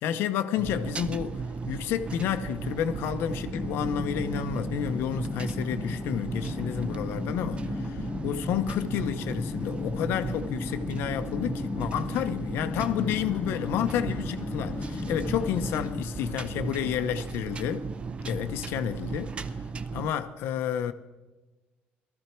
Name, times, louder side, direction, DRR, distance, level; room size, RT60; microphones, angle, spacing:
voice 1, 0.0-17.9 18.2-19.3 19.9-20.9, left 9 dB, 75° left, 0.8 m, -30 dB
sound 1, 0.6-20.1, right 4 dB, 30° right, 0.6 m, -36 dB
sound 2, 3.3-16.1, left 5 dB, 25° left, 0.3 m, -36 dB
Motor vehicle (road), 12.8-18.0, left 6 dB, 45° left, 1.0 m, -47 dB
17.0 x 13.5 x 4.5 m
cardioid pair, 125°, 4 cm